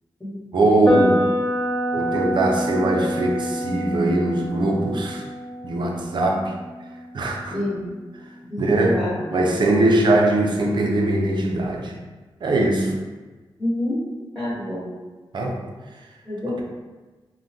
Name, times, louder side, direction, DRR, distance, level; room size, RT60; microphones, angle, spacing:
voice 1, 0.5-1.2 1.9-5.2 5.6-6.5 7.1-7.6 8.6-9.0 9.3-11.9 12.4-12.9 15.3-15.6, right 2 dB, 60° right, 0 dB, 0.5 m, -21 dB
sound 1, 0.8-8.8, equal, 20° left, 0.7 m, -27 dB
voice 2, 7.5-7.8 8.4-9.2 13.6-14.0 14.3-14.8 16.2-16.5, left 1 dB, ahead, -10 dB, 1.0 m, -28 dB
3.4 x 2.1 x 2.7 m, 1.3 s
wide cardioid pair, 100°, 9 cm